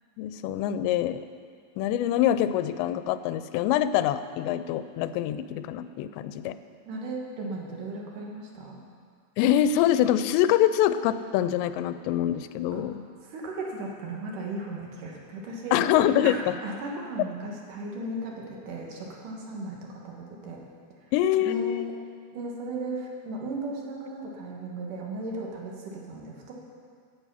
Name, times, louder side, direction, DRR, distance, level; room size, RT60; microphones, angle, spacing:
voice 1, 0.2-1.2 1.8-6.6 9.4-13.0 15.7-16.6 21.1-21.9, left 11 dB, 90° left, 12 dB, 2.8 m, -25 dB
voice 2, 6.9-8.8 12.7-12.8 13.2-15.8 16.2-20.6 21.4-21.9 22.3-26.5, right 2 dB, 60° right, -1 dB, 2.7 m, -36 dB
16.0 x 7.7 x 5.6 m, 2.1 s
omnidirectional pair, 5.0 m